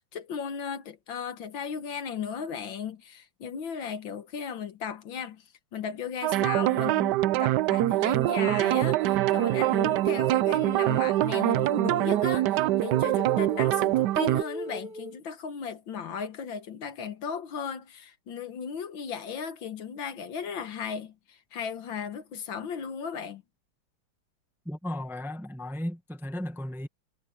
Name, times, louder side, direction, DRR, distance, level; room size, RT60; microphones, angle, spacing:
voice 1, 0.0-5.4 5.7-23.4, left 7 dB, 65° left, 1.9 m, -36 dB
sound 1, 6.2-14.4, right 16 dB, 85° right, 0.9 m, -24 dB
sound 2, 8.2-15.2, right 1 dB, 40° right, 3.3 m, -42 dB
voice 2, 24.6-26.9, left 1 dB, ahead, 1.2 m, -35 dB
omnidirectional pair, 2.4 m